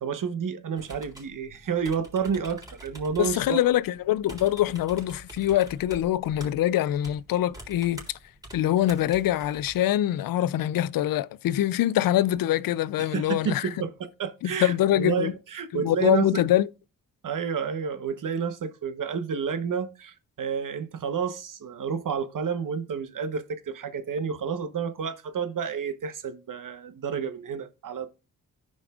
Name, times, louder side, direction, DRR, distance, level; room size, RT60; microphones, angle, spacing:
voice 1, 0.0-3.6 13.0-16.4 17.2-28.1, right 6 dB, 65° right, 1.1 m, -30 dB
sound 1, 0.8-9.8, right 1 dB, 10° right, 3.6 m, -46 dB
voice 2, 3.2-8.2 8.5-13.7 14.4-15.3 15.7-16.7, left 13 dB, 80° left, 0.5 m, -24 dB
14.5 x 5.2 x 2.4 m
cardioid pair, 55°, 34 cm